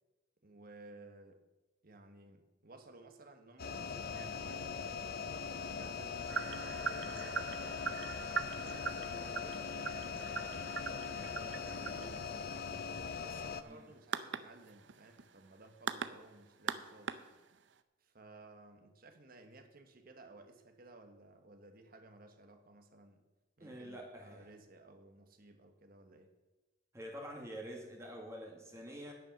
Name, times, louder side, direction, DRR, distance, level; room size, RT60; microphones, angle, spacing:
voice 1, 0.4-1.4 1.8-5.1 5.5-8.0 8.6-12.5 13.0-17.2 18.0-23.2 23.6-26.4, right 2 dB, 50° right, 7 dB, 1.4 m, -56 dB
sound 1, 3.6-13.6, left 6 dB, 55° left, 0.6 m, -41 dB
sound 2, 6.3-17.8, right 6 dB, 70° right, 0.6 m, -42 dB
voice 2, 23.6-24.5 26.9-29.1, equal, 15° right, -1 dB, 1.9 m, -47 dB
10.0 x 8.7 x 6.5 m, 1.1 s
head